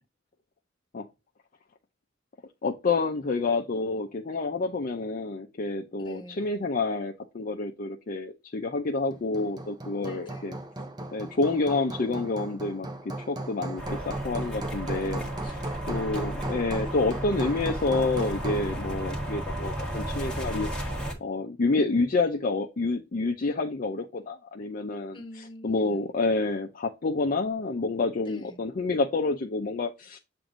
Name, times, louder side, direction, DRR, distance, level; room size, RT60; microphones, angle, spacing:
voice 1, 2.6-10.5 11.1-15.2 15.9-20.9 21.2-25.2 25.6-30.2, left 3 dB, 45° left, 0.5 m, -28 dB
voice 2, 6.0-6.5 10.0-10.5 14.9-16.0 25.1-26.1 28.2-28.6, left 1 dB, 25° left, 1.4 m, -47 dB
Hammer, 9.1-18.8, right 1 dB, 20° right, 0.7 m, -37 dB
sound 1, 13.8-21.1, right 1 dB, 5° left, 1.2 m, -34 dB
7.5 x 2.6 x 4.9 m
head